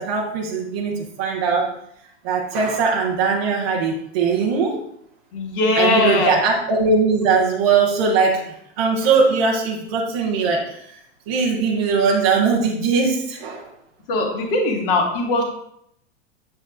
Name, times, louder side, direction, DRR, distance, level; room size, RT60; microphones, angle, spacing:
voice 1, 0.0-1.7 2.2-4.8 5.8-8.4 8.8-10.6 11.3-13.6, right 5 dB, 15° right, -4 dB, 0.3 m, -20 dB
voice 2, 5.3-6.4 14.1-15.4, left 2 dB, 50° left, 1 dB, 1.8 m, -20 dB
7.8 x 7.5 x 2.4 m, 0.73 s
supercardioid pair, 170°, 35 cm